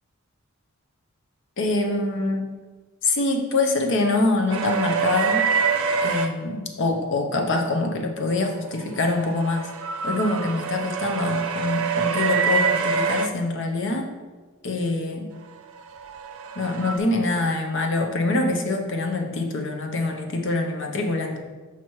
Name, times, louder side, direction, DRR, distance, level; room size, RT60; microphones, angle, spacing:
voice 1, 1.6-2.5 3.0-5.5 6.0-9.7 10.0-14.1 14.6-15.3 16.5-21.4, left 2 dB, 60° left, 3 dB, 0.8 m, -24 dB
sound 1, 4.5-6.3 8.7-13.3 15.7-17.0, right 5 dB, 70° right, 0.5 m, -25 dB
5.8 x 5.7 x 3.1 m, 1.3 s
head